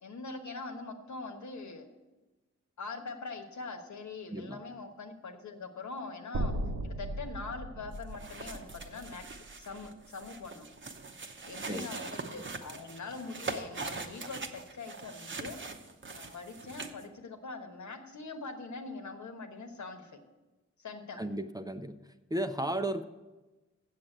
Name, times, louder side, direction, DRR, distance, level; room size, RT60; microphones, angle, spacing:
voice 1, 0.0-1.9 2.8-6.5 6.8-10.7 11.4-15.6 16.1-20.2 20.8-21.2, left 3 dB, 80° left, 5 dB, 1.2 m, -43 dB
voice 2, 4.3-4.6 11.7-11.9 21.2-22.0 22.3-23.0, right 1 dB, 15° right, 9 dB, 0.5 m, -34 dB
sound 1, 6.3-10.5, right 1 dB, 80° right, 1.0 m, -38 dB
sound 2, 7.9-17.0, right 4 dB, 40° right, 0.8 m, -42 dB
7.6 x 7.3 x 7.9 m, 1.1 s
wide cardioid pair, 90°, 29 cm